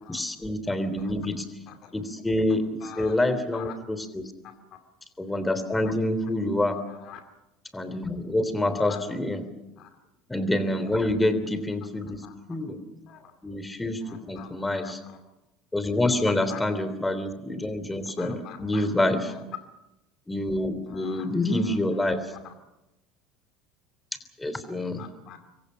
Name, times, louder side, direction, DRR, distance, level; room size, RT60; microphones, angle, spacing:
voice 1, 0.1-1.4 1.9-2.7 3.0-4.3 5.2-6.8 7.7-9.4 10.3-12.2 12.5-12.8 13.4-14.0 14.3-15.0 15.7-19.3 20.3-22.3 24.4-25.0, left 1 dB, 10° left, 11 dB, 3.3 m, -27 dB
voice 2, 2.5-3.2 3.5-3.7 4.4-4.8 5.7-5.9 6.9-7.2 8.8-9.0 9.8-9.9 11.8-11.9 12.2-12.6 13.1-13.3 14.0-14.5 14.8-15.2 16.5-16.6 18.1-18.9 19.2-19.4 20.9-22.0 22.3-22.5 25.0-25.4, left 10 dB, 50° left, 7 dB, 2.3 m, -46 dB
27.0 x 23.0 x 5.7 m, 0.95 s
figure-of-eight pair, 70°, 0 cm